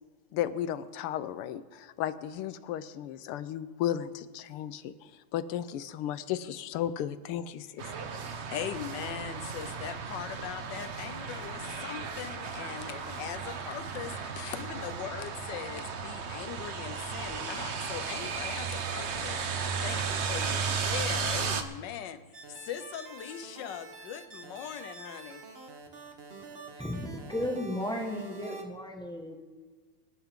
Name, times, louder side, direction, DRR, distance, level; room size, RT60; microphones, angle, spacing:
voice 1, 0.3-4.9 5.3-7.8, left 11 dB, 85° left, 14 dB, 1.6 m, -34 dB
sound 1, 7.8-21.6, right 5 dB, 60° right, 0.7 m, -35 dB
voice 2, 8.5-19.4 19.8-25.4, left 9 dB, 65° left, 11 dB, 1.4 m, -40 dB
sound 2, 22.3-28.6, right 3 dB, 35° right, 1.1 m, -46 dB
voice 3, 26.7-29.3, left 1 dB, 5° left, 1 dB, 1.1 m, -35 dB
23.5 x 10.5 x 3.7 m, 1.4 s
omnidirectional pair, 2.4 m